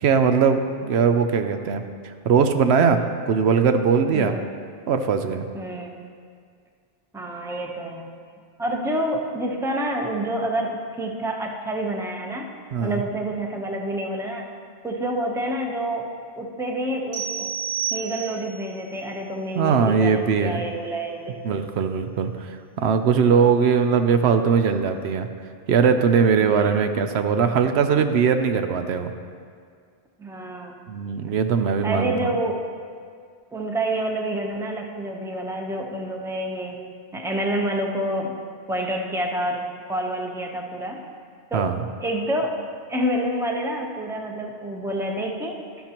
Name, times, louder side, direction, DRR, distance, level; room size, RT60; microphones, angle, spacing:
voice 1, 0.0-4.3 4.9-5.5 12.7-13.0 19.6-20.6 21.4-25.3 25.7-29.1 30.9-32.3 41.5-41.8, right 6 dB, 80° right, 7 dB, 0.9 m, -20 dB
voice 2, 4.1-4.5 5.5-5.9 7.1-8.1 8.6-12.5 12.8-14.5 14.8-16.1 16.4-17.5 17.9-21.3 26.4-26.7 30.2-30.8 31.8-32.6 33.5-36.8 37.1-38.4 38.7-41.0 41.5-41.7 42.0-42.6 42.9-45.6, right 1 dB, 5° right, 1 dB, 0.7 m, -28 dB
sound 1, 17.1-18.7, right 8 dB, 45° right, 1.3 m, -30 dB
12.0 x 11.0 x 2.9 m, 2.1 s
omnidirectional pair, 1.1 m